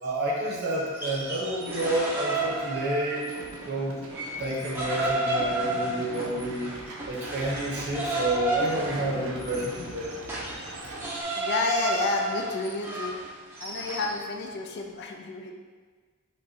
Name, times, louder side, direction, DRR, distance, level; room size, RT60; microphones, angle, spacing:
voice 1, 0.0-3.4 3.7-4.0 4.4-6.7 7.1-10.2, right 1 dB, 50° right, -3 dB, 0.9 m, -29 dB
sound 1, 0.8-3.6 3.9-14.2, right 1 dB, 10° right, 0.7 m, -32 dB
sound 2, 3.3-11.2, right 2 dB, 70° right, 0.7 m, -43 dB
sound 3, 5.4-7.0 8.4-10.5, left 1 dB, 25° left, 0.8 m, -45 dB
voice 2, 11.3-13.2 13.6-15.5, left 3 dB, 50° left, 2 dB, 0.4 m, -30 dB
5.2 x 2.4 x 4.1 m, 1.5 s
head